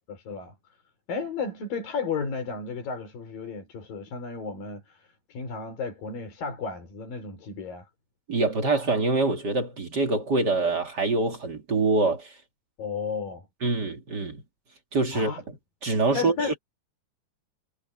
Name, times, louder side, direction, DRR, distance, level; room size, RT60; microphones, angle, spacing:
voice 1, 0.1-0.5 1.1-7.9 12.8-13.5 15.1-15.4 16.1-16.5, left 5 dB, 75° left, 6.3 m, -33 dB
voice 2, 8.3-12.3 13.6-14.4 14.9-15.3 15.8-16.3, right 3 dB, 35° right, 2.4 m, -25 dB
omnidirectional pair, 4.0 m